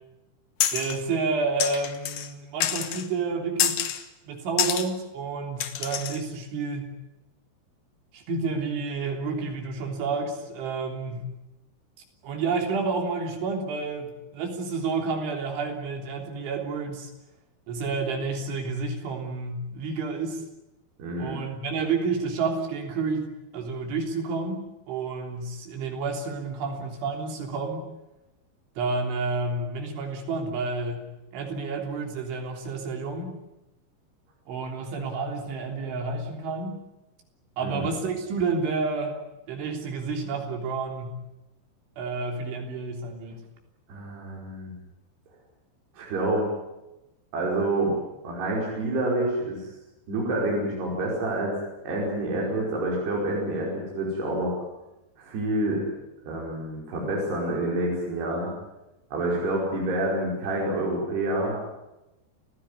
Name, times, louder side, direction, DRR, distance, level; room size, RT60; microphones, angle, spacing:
sound 1, 0.6-1.0 1.6-2.3 2.6-3.1 3.6-4.0 4.6-4.9 5.6-6.2, left 10 dB, 65° left, 2.3 m, -27 dB
voice 1, 0.7-6.9 8.1-11.3 12.2-17.1 17.7-20.4 21.2-27.9 28.8-31.1 31.3-33.4 34.5-36.8 37.6-39.2 39.5-41.2 42.0-43.4, right 4 dB, 85° right, 2 dB, 5.9 m, -30 dB
voice 2, 21.0-21.4 37.6-37.9 43.9-44.7 46.0-46.5 47.3-48.0 48.2-49.6 50.1-51.5 51.9-54.6 55.2-55.8 56.3-58.5 59.1-61.6, right 1 dB, 60° right, -3 dB, 7.2 m, -27 dB
30.0 x 15.5 x 9.8 m, 0.98 s
omnidirectional pair, 5.3 m